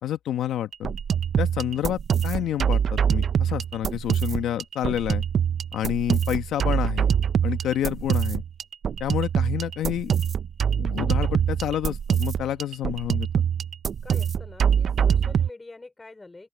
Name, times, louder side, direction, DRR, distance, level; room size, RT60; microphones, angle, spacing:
voice 1, 0.0-0.9 1.4-5.2 5.7-8.4 9.0-10.1 10.8-13.4, left 11 dB, 75° left, 1.4 m, -29 dB
sound 1, 0.7-15.5, right 8 dB, 55° right, 0.7 m, -24 dB
voice 2, 14.0-16.5, left 2 dB, 20° left, 4.9 m, -45 dB
open air
cardioid pair, 90°, 0 cm